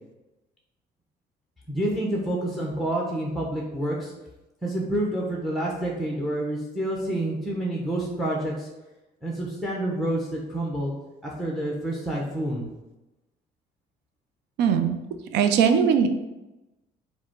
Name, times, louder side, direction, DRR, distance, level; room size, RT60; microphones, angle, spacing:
voice 1, 1.7-4.1 4.6-8.7 9.2-10.9 11.2-12.7, right 1 dB, ahead, -1 dB, 0.8 m, -28 dB
voice 2, 14.6-15.0 15.3-16.1, right 7 dB, 85° right, 7 dB, 0.5 m, -20 dB
4.9 x 2.2 x 4.5 m, 1.0 s
cardioid pair, 110°, 17 cm